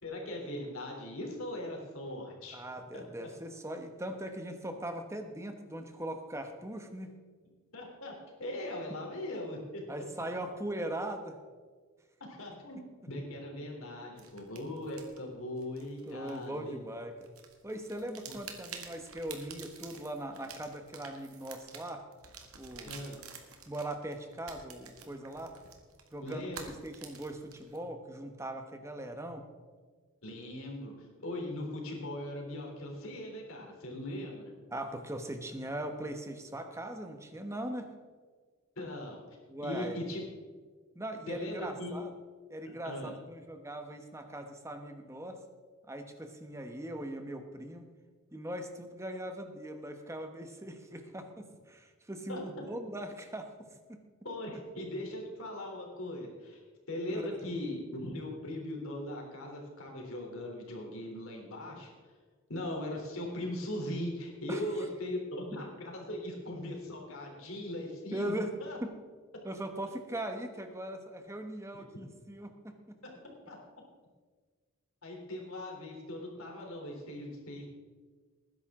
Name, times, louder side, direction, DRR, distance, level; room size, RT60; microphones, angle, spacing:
voice 1, 0.0-2.6 2.9-3.0 7.7-8.1 8.4-9.8 12.3-12.8 13.1-16.7 22.8-23.2 26.2-26.7 30.2-34.4 38.8-39.2 39.6-40.2 41.3-42.0 42.8-43.1 52.3-52.4 54.2-56.6 56.9-62.1 62.5-68.3 68.6-68.8 71.7-71.8 73.5-73.6 75.0-77.7, left 1 dB, 75° left, 0 dB, 3.4 m, -39 dB
voice 2, 2.5-7.1 9.9-11.4 16.0-17.3 17.6-22.0 22.6-23.0 23.7-25.5 26.1-29.5 34.7-37.9 39.5-40.0 40.9-42.1 42.5-45.4 45.9-47.8 48.3-53.5 53.9-54.0 57.1-57.4 64.5-64.6 68.1-68.5 68.8-68.9 69.4-73.0, right 1 dB, 15° right, 6 dB, 1.1 m, -40 dB
sound 1, 14.2-16.9 17.2-27.8, right 6 dB, 85° right, 1.9 m, -50 dB
19.0 x 10.5 x 3.7 m, 1.5 s
head